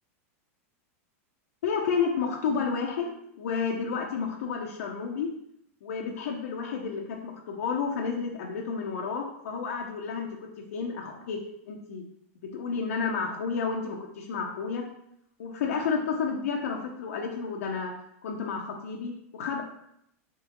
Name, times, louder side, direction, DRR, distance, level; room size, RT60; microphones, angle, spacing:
voice 1, 1.6-3.1 3.4-5.3 5.8-10.3 10.7-11.4 11.7-12.0 12.5-14.8 15.4-17.9 18.2-19.6, left 5 dB, 85° left, 0 dB, 0.6 m, -31 dB
3.7 x 3.5 x 2.9 m, 0.75 s
supercardioid pair, 145°, 8 cm